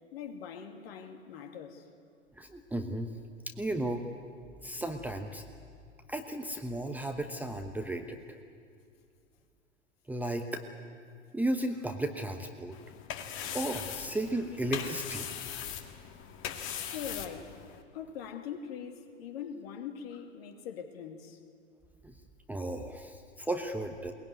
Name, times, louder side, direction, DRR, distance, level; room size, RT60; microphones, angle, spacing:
voice 1, 0.1-1.8 16.9-17.6 17.9-21.4, left 7 dB, 50° left, 5 dB, 2.6 m, -42 dB
voice 2, 2.4-3.2 3.6-4.1 4.6-5.4 6.1-8.4 10.1-10.6 11.3-12.8 13.5-15.3 22.0-22.1 22.5-24.1, right 1 dB, 5° right, 5 dB, 1.1 m, -34 dB
sound 1, 12.7-17.8, left 9 dB, 35° left, 1.9 m, -40 dB
22.0 x 20.0 x 9.6 m, 2.3 s
figure-of-eight pair, 105°, 38 cm